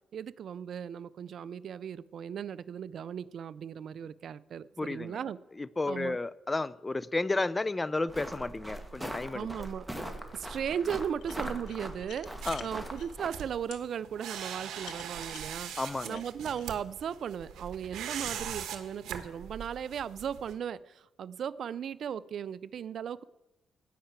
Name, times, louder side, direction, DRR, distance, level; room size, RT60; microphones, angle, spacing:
voice 1, 0.1-5.4 5.9-6.2 9.3-9.9 10.3-15.7 16.0-23.2, right 8 dB, 60° right, 18 dB, 0.4 m, -37 dB
voice 2, 4.8-5.2 5.6-9.5 12.5-12.7 15.8-16.2, left 2 dB, 20° left, 18 dB, 0.5 m, -32 dB
sound 1, 8.1-13.3, right 1 dB, 5° right, 1.8 m, -41 dB
sound 2, 11.2-13.1 13.7-13.8 14.4-16.8, left 9 dB, 75° left, 1.1 m, -50 dB
sound 3, 12.4-20.5, right 9 dB, 75° right, 1.2 m, -41 dB
15.5 x 5.7 x 8.8 m, 1.0 s
cardioid pair, 90°, 0 cm